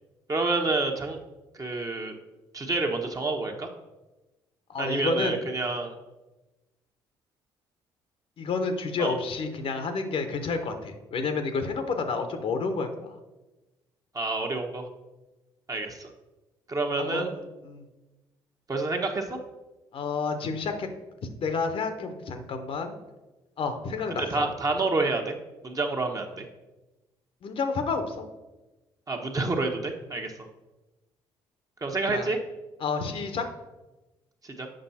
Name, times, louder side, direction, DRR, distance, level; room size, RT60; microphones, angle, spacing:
voice 1, 0.3-1.2 1.5-2.2 2.5-3.7 4.8-5.9 9.0-9.2 14.1-14.8 15.7-16.1 16.7-17.3 18.7-19.4 24.2-25.3 25.6-26.5 29.1-30.5 31.8-32.4 34.4-34.7, right 3 dB, 30° right, 2 dB, 1.2 m, -28 dB
voice 2, 4.7-5.4 8.4-13.2 17.0-17.8 19.9-20.9 21.4-23.0 23.6-24.5 27.4-28.3 32.1-32.3 32.8-33.5, left 4 dB, 55° left, 7 dB, 1.0 m, -30 dB
7.6 x 5.3 x 4.3 m, 1.1 s
hypercardioid pair, 55°, 11 cm